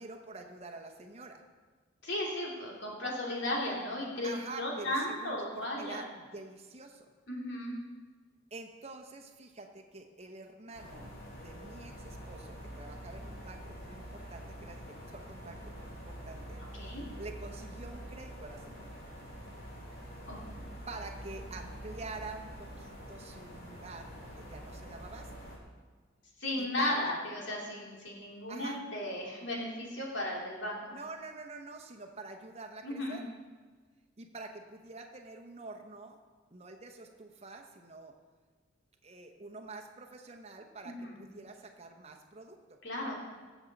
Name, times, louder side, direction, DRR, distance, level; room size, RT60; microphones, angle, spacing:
voice 1, 0.0-1.4 4.2-7.1 8.5-11.1 11.4-16.6 17.2-18.9 20.9-25.3 26.6-27.0 28.5-28.8 30.9-33.3 34.2-36.2 36.5-38.1 39.0-42.8, right 3 dB, 30° right, 3 dB, 0.9 m, -47 dB
voice 2, 2.0-6.0 7.3-7.8 16.7-17.0 20.3-20.4 26.4-30.8 32.8-33.2 40.8-41.2 42.8-43.1, left 1 dB, 65° left, -3 dB, 2.6 m, -35 dB
sound 1, 10.7-25.6, equal, 45° left, 2.2 m, -46 dB
17.0 x 7.2 x 4.1 m, 1.4 s
head